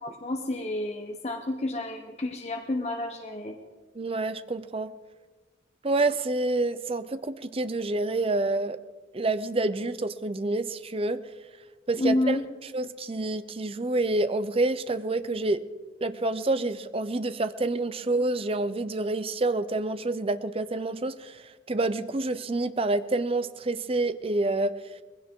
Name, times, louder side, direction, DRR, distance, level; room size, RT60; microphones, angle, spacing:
voice 1, 0.0-3.6 12.0-12.5, left 1 dB, 35° left, 4 dB, 1.0 m, -30 dB
voice 2, 4.0-4.9 5.8-8.8 9.1-11.2 11.9-12.4 12.7-15.6 16.0-24.7, right 2 dB, 30° right, 12 dB, 0.6 m, -28 dB
20.0 x 16.5 x 3.7 m, 1.3 s
head